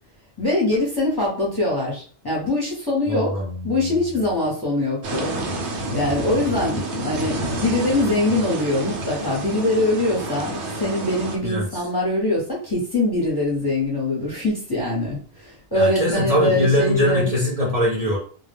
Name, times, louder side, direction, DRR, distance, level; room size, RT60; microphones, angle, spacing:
voice 1, 0.4-3.3 3.6-5.3 5.7-17.3, left 2 dB, 25° left, -4 dB, 0.7 m, -23 dB
voice 2, 3.1-4.0 11.4-11.8 15.7-18.2, left 1 dB, 40° right, -6 dB, 0.6 m, -22 dB
sound 1, 5.0-11.4, right 2 dB, 80° right, 0.9 m, -29 dB
2.2 x 2.1 x 3.2 m, 0.43 s
omnidirectional pair, 1.1 m